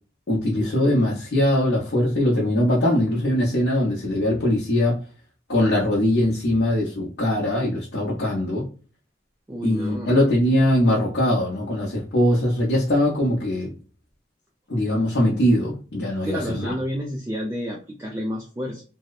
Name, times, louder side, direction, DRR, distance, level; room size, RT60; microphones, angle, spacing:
voice 1, 0.3-5.0 5.5-8.7 9.6-13.7 14.7-16.7, left 1 dB, 65° left, -5 dB, 0.7 m, -21 dB
voice 2, 9.5-10.2 16.2-18.8, equal, 15° right, -1 dB, 0.4 m, -30 dB
2.7 x 2.0 x 2.3 m, 0.37 s
head